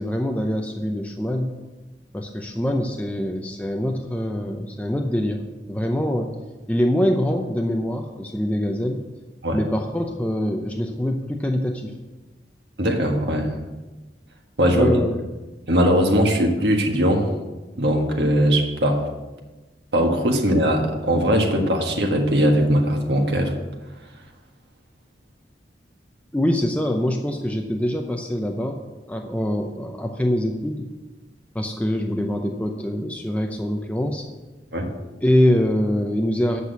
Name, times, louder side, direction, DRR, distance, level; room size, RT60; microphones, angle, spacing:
voice 1, 0.0-1.5 2.1-5.4 5.7-6.3 6.7-9.0 9.5-11.9 14.7-15.2 26.3-28.8 29.1-30.9 31.5-34.3 35.2-36.6, left 1 dB, 10° left, 2 dB, 0.6 m, -24 dB
voice 2, 12.8-13.5 14.6-14.9 15.7-17.3 17.8-19.0 19.9-23.5 34.7-34.9, equal, 70° right, 2 dB, 1.6 m, -20 dB
8.3 x 6.1 x 8.1 m, 1.2 s
head